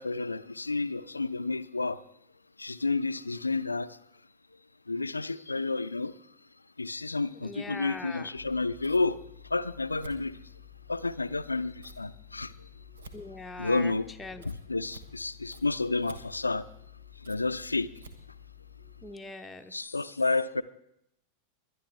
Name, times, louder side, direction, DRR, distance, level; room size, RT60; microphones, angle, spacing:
voice 1, 0.0-2.0 2.6-4.0 4.9-6.2 6.8-9.2 9.5-10.4 10.9-12.5 13.6-14.1 14.4-16.7 17.2-17.9 19.7-20.6, left 3 dB, 80° left, 15 dB, 0.4 m, -30 dB
voice 2, 7.4-8.3 13.1-13.9 14.2-14.4 19.0-19.7, left 3 dB, 10° left, 5 dB, 0.8 m, -41 dB
Scissors, 8.3-19.0, left 3 dB, 65° right, 1.3 m, -50 dB
21.5 x 11.0 x 3.4 m, 0.78 s
figure-of-eight pair, 90°, 0 cm